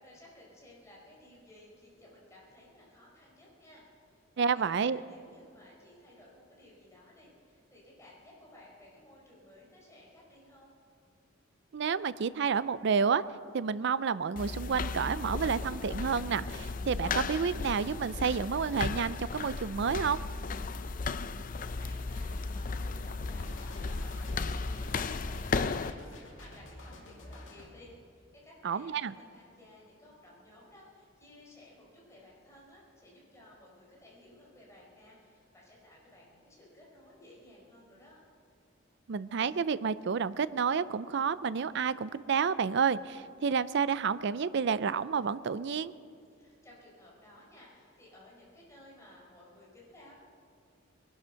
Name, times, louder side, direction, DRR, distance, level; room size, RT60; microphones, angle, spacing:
voice 1, 0.0-10.7 20.7-38.2 46.4-50.1, left 1 dB, 15° left, -4 dB, 4.7 m, -56 dB
voice 2, 4.4-5.0 11.7-13.2 13.5-20.2 28.6-29.1 39.1-45.9, right 6 dB, 60° right, 16 dB, 0.5 m, -30 dB
sound 1, 14.4-25.9, left 4 dB, 45° left, 0.5 m, -35 dB
sound 2, 23.4-27.7, left 1 dB, 75° left, 2.6 m, -49 dB
21.5 x 11.5 x 5.7 m, 2.5 s
head